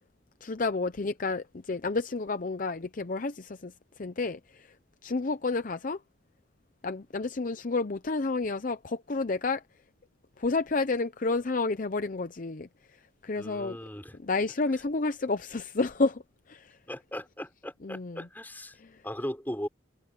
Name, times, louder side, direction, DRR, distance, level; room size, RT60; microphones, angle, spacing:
voice 1, 0.4-4.7 5.0-6.0 6.8-9.6 10.4-12.7 13.2-13.8 14.2-16.2 16.5-16.8 17.8-18.3 18.8-19.0, left 3 dB, 45° left, 0.6 m, -30 dB
voice 2, 13.3-14.2 16.9-18.7 19.0-19.7, equal, 10° left, 5.0 m, -38 dB
head